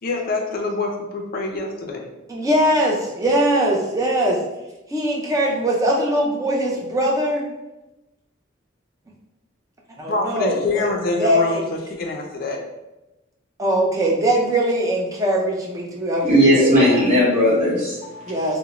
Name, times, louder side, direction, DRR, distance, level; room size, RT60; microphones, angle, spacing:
voice 1, 0.0-2.1 10.1-12.6, left 3 dB, 45° left, 2 dB, 0.4 m, -25 dB
voice 2, 2.3-4.4 4.9-7.5 10.0-10.9 11.2-11.6 13.6-16.9 18.3-18.6, right 1 dB, 15° right, -1 dB, 0.4 m, -21 dB
voice 3, 16.2-18.5, equal, 35° right, -8 dB, 1.1 m, -17 dB
2.4 x 2.0 x 2.9 m, 1.0 s
head